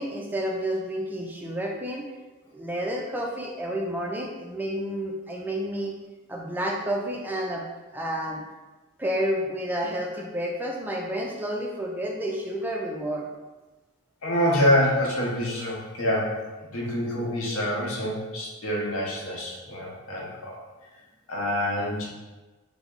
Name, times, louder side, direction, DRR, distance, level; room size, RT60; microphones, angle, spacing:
voice 1, 0.0-2.0 2.5-5.9 6.3-7.6 7.9-8.4 9.0-13.3, equal, 10° right, -1 dB, 0.3 m, -30 dB
voice 2, 14.2-16.4 16.7-20.6 21.3-22.0, left 1 dB, 70° left, -3 dB, 0.8 m, -26 dB
3.5 x 2.1 x 3.5 m, 1.2 s
head